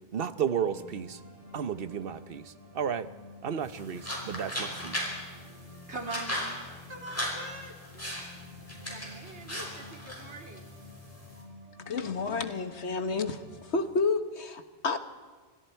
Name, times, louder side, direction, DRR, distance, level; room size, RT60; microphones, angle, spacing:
voice 1, 0.1-1.2 1.5-3.1 3.4-5.1, right 8 dB, 60° right, 12 dB, 1.1 m, -33 dB
sound 1, 0.7-13.8, left 2 dB, 60° left, 6.9 m, -51 dB
sound 2, 3.6-11.4, equal, 15° left, 5.3 m, -38 dB
voice 2, 5.9-6.6 6.9-8.3 8.8-10.7 11.2-11.3, right 2 dB, 85° right, 2 dB, 3.3 m, -43 dB
voice 3, 11.9-13.4 13.7-15.0, left 4 dB, 85° left, 8 dB, 1.6 m, -30 dB
28.5 x 25.0 x 4.6 m, 1.4 s
omnidirectional pair, 1.1 m